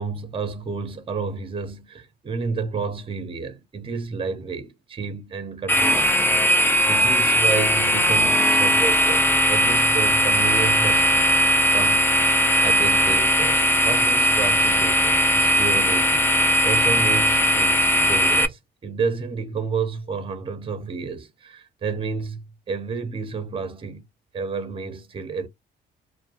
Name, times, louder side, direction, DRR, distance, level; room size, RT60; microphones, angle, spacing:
voice 1, 0.0-6.5 6.9-11.3 11.7-12.2 12.6-24.0 24.3-25.5, right 5 dB, 25° right, 0.6 m, -30 dB
sound 1, 5.7-18.5, equal, 10° left, 0.3 m, -19 dB
2.3 x 2.1 x 2.7 m
cardioid pair, 90°, 20 cm